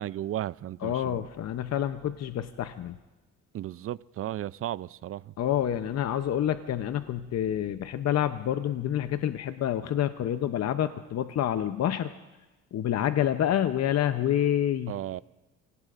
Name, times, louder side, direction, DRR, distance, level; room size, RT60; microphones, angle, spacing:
voice 1, 0.0-1.2 3.5-5.3 14.9-15.2, right 12 dB, 50° right, 0.4 m, -34 dB
voice 2, 0.8-3.0 5.4-12.1 12.7-14.9, left 10 dB, 60° left, 0.7 m, -28 dB
29.0 x 18.0 x 2.5 m
cardioid pair, 90°, 30 cm